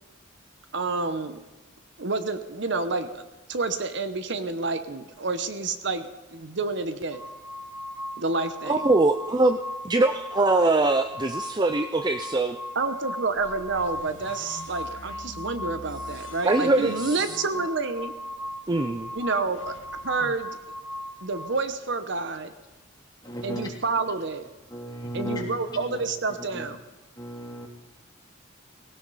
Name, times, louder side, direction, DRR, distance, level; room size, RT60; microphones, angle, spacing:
voice 1, 0.7-1.4 2.0-7.2 8.2-8.8 12.8-18.1 19.1-19.7 20.0-20.5 21.2-22.5 23.4-24.5 25.1-26.8, right 3 dB, 60° right, 10 dB, 0.9 m, -29 dB
sound 1, 7.1-21.6, left 1 dB, ahead, 3.1 m, -38 dB
voice 2, 8.7-9.6 9.8-12.6 16.4-17.4 18.7-19.1, right 2 dB, 20° right, 8 dB, 0.5 m, -22 dB
sound 2, 13.4-21.3, left 2 dB, 65° left, 1.2 m, -47 dB
voice 3, 23.2-23.7 24.7-25.5 25.7-26.0 26.5-26.7 27.1-27.7, equal, 20° left, -2 dB, 3.1 m, -35 dB
18.5 x 17.0 x 4.1 m, 1.1 s
head